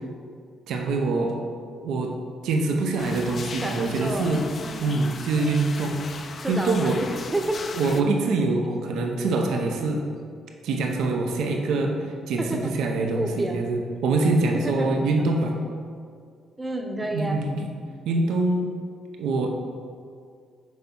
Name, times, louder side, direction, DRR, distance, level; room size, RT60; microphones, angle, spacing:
voice 1, 0.7-1.4 1.8-2.2 2.4-4.5 4.8-7.0 7.7-10.1 10.6-15.6 17.1-17.7 18.1-18.7 19.2-19.5, right 3 dB, 85° right, 2 dB, 0.8 m, -24 dB
sound 1, 3.0-8.0, left 5 dB, 45° left, 0.4 m, -38 dB
voice 2, 3.6-4.3 4.6-5.0 6.4-7.6 12.4-12.7 13.1-13.6 14.5-14.9 16.6-17.4, right 1 dB, 15° right, 4 dB, 0.8 m, -30 dB
6.4 x 4.6 x 5.4 m, 2.2 s
cardioid pair, 90°, 0 cm